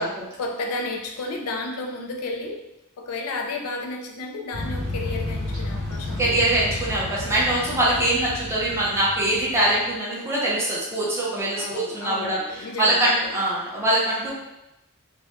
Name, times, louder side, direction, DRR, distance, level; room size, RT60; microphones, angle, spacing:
voice 1, 0.0-2.7 3.0-6.6 11.6-13.3, left 2 dB, 75° left, 1 dB, 0.4 m, -32 dB
sound 1, 4.5-9.8, left 2 dB, 85° right, 1.0 m, -32 dB
voice 2, 6.2-14.3, right 1 dB, 10° right, -7 dB, 0.5 m, -23 dB
2.1 x 2.1 x 2.9 m, 0.91 s
head